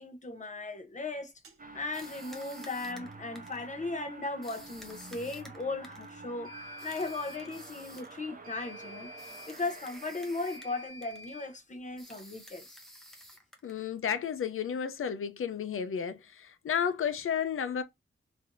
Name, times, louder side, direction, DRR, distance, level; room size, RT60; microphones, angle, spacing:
voice 1, 0.0-1.3 1.7-6.6 6.8-9.1 9.5-12.8, left 3 dB, 35° left, 0.8 m, -37 dB
sound 1, 1.4-1.6 6.4-7.5 8.4-9.5 10.4-11.5, left 1 dB, 85° right, 0.7 m, -49 dB
sound 2, 1.6-10.9, right 3 dB, 40° right, 0.7 m, -48 dB
sound 3, 1.9-3.7 4.4-6.1 6.8-8.2 9.2-10.8 11.0-11.3 12.0-13.9, equal, ahead, 0.7 m, -52 dB
voice 2, 13.6-17.8, left 7 dB, 85° left, 0.5 m, -32 dB
3.3 x 2.6 x 2.5 m
wide cardioid pair, 105°, 21 cm